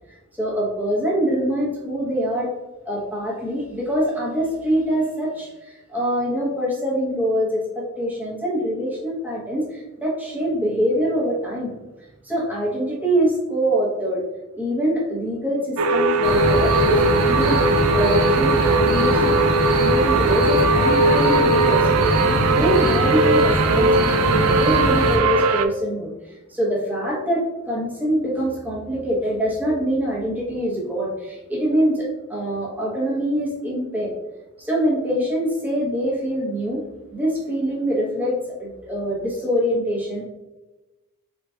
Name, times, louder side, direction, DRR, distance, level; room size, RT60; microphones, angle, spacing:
voice 1, 0.3-2.5 2.8-11.7 12.2-14.2 14.5-17.6 17.9-19.3 19.8-34.1 34.6-36.8 37.1-40.3, equal, 10° right, -5 dB, 1.0 m, -24 dB
sound 1, 15.8-25.7, right 3 dB, 70° right, 0.3 m, -19 dB
sound 2, 16.2-25.2, equal, 50° right, 1.2 m, -23 dB
4.1 x 3.7 x 2.4 m, 1.1 s
head